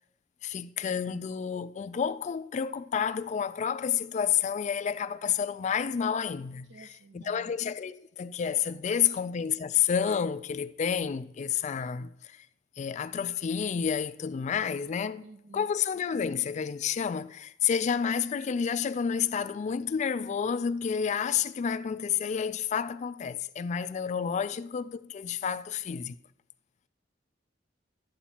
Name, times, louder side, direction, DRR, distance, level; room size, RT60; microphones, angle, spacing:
voice 1, 0.4-12.5 12.8-15.2 15.5-26.2, left 7 dB, 40° left, 0.3 m, -30 dB
voice 2, 6.7-7.5 8.9-9.2 15.2-15.7, right 3 dB, 75° right, 0.6 m, -52 dB
12.0 x 8.7 x 2.9 m
head